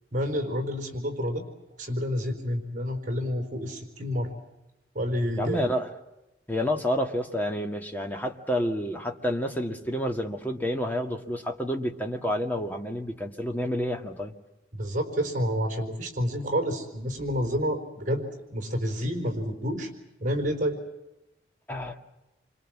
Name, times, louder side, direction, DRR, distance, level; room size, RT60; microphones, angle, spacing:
voice 1, 0.1-1.4 1.8-4.3 4.9-5.6 14.7-18.2 18.5-19.9 20.2-20.8, equal, 45° right, 5 dB, 4.3 m, -29 dB
voice 2, 5.4-5.9 6.5-14.3 21.7-22.0, equal, 10° left, 3 dB, 1.9 m, -29 dB
29.0 x 25.5 x 7.4 m, 0.95 s
head